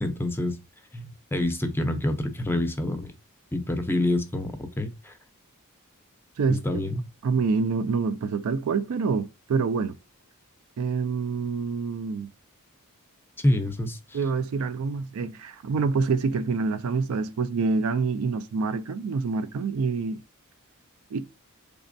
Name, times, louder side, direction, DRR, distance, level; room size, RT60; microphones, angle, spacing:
voice 1, 0.0-0.6 0.9-3.1 3.5-5.1 6.5-7.1 13.4-14.2, left 1 dB, 10° left, 0.5 m, -27 dB
voice 2, 7.2-10.0 10.8-12.3 14.1-20.2 21.1-21.3, right 4 dB, 65° right, 0.4 m, -26 dB
4.1 x 3.3 x 2.6 m
head